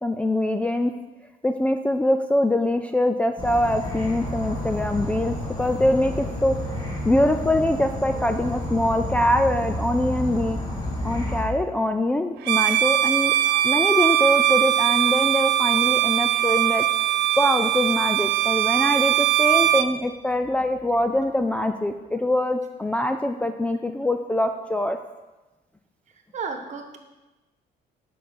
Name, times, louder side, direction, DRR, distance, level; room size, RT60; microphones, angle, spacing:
voice 1, 0.0-0.9 1.4-6.6 7.0-10.6 11.0-13.3 13.6-16.8 17.4-25.0, left 1 dB, 5° left, 5 dB, 0.4 m, -23 dB
Insect / Frog, 3.4-11.4, left 1 dB, 25° left, 1.9 m, -30 dB
Bowed string instrument, 12.4-19.9, right 12 dB, 80° right, 0.5 m, -21 dB
voice 2, 26.3-27.0, right 5 dB, 45° right, 5 dB, 1.2 m, -33 dB
7.3 x 5.4 x 6.3 m, 1.1 s
cardioid pair, 110°, 17 cm